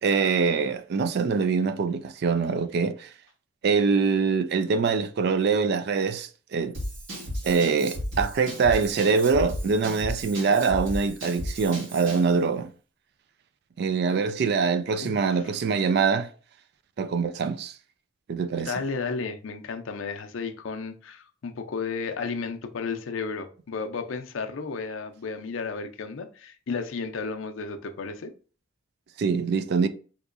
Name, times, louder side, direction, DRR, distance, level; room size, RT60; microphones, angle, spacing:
voice 1, 0.0-3.1 3.6-6.8 7.4-12.7 13.8-16.3 17.0-17.7 18.3-18.7 29.2-29.9, right 5 dB, 55° right, 0.3 m, -24 dB
Drum kit / Drum, 6.7-12.3, equal, 80° right, 1.5 m, -34 dB
voice 2, 15.0-15.6 18.7-28.3, left 4 dB, 75° left, 0.5 m, -33 dB
3.5 x 2.9 x 2.4 m
head